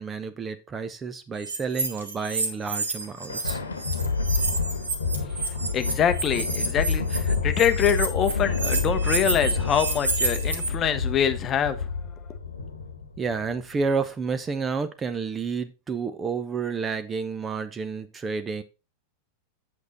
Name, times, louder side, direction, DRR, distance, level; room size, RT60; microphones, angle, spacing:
voice 1, 0.0-3.6 13.2-18.6, right 5 dB, 20° right, 0.8 m, -30 dB
sound 1, 1.4-3.5 3.8-10.7, right 3 dB, 70° right, 1.6 m, -29 dB
Thunder, 2.9-13.6, left 4 dB, 75° left, 1.2 m, -28 dB
voice 2, 5.2-11.9, left 8 dB, 30° left, 0.9 m, -25 dB
8.4 x 6.5 x 4.1 m
figure-of-eight pair, 90°, 0 cm